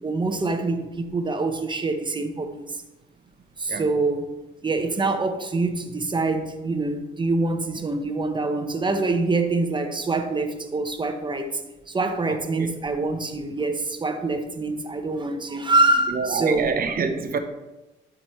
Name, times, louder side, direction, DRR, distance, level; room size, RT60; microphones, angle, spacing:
voice 1, 0.0-2.8 3.6-4.3 4.6-11.6 11.9-16.7, right 3 dB, 25° right, 6 dB, 1.0 m, -25 dB
voice 2, 12.3-12.7 16.1-17.4, right 5 dB, 45° right, 7 dB, 0.9 m, -26 dB
12.0 x 5.1 x 3.2 m, 1.1 s
cardioid pair, 90°, 20 cm